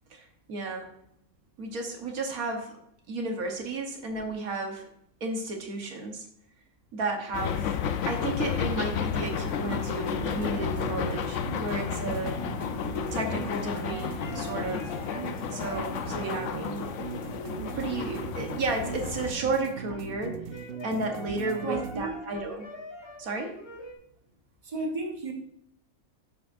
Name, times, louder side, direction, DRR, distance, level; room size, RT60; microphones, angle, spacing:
voice 1, 0.1-0.9 1.6-2.7 3.1-4.8 5.2-6.3 6.9-7.7 8.1-12.4 13.1-14.9 15.5-16.9 17.7-22.7 23.2-23.5, right 3 dB, 85° right, 3 dB, 1.7 m, -33 dB
sound 1, 7.3-19.3, left 8 dB, 65° left, 0.9 m, -32 dB
sound 2, 9.1-22.1, right 9 dB, 65° right, 0.6 m, -40 dB
sound 3, 9.9-18.6 18.9-23.9, equal, 25° left, 0.7 m, -44 dB
voice 2, 21.6-22.2 24.6-25.3, right 2 dB, 25° right, 0 dB, 1.4 m, -32 dB
9.9 x 7.5 x 2.6 m, 0.74 s
omnidirectional pair, 1.5 m